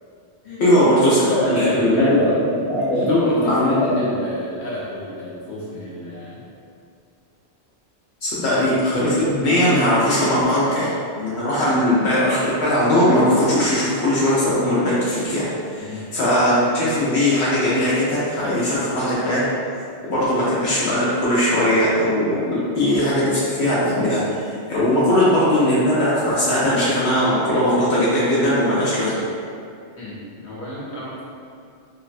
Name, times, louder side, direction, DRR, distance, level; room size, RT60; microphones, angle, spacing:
voice 1, 0.6-4.1 8.2-10.9 11.2-19.5 20.0-24.4 24.7-29.3, left 1 dB, 75° left, -9 dB, 0.8 m, -19 dB
voice 2, 1.3-2.4 2.9-6.4 8.5-8.6 15.8-16.0 29.9-31.2, left 1 dB, 45° left, -9 dB, 0.9 m, -31 dB
3.3 x 2.0 x 2.4 m, 2.4 s
omnidirectional pair, 1.2 m